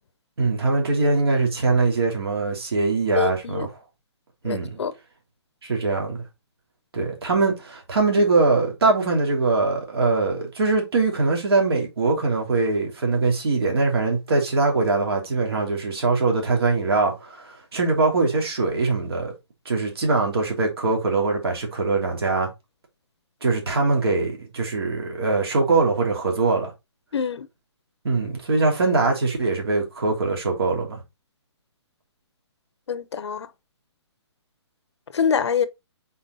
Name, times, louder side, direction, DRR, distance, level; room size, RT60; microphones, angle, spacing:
voice 1, 0.4-3.7 4.4-4.8 5.6-6.2 6.9-19.3 19.6-22.5 23.4-26.7 28.0-31.0, right 3 dB, 55° right, 3.1 m, -22 dB
voice 2, 3.1-3.7 4.4-4.9 27.1-27.5 32.9-33.5 35.1-35.7, left 7 dB, 70° left, 0.8 m, -25 dB
5.5 x 4.4 x 4.1 m
hypercardioid pair, 175°, 15 cm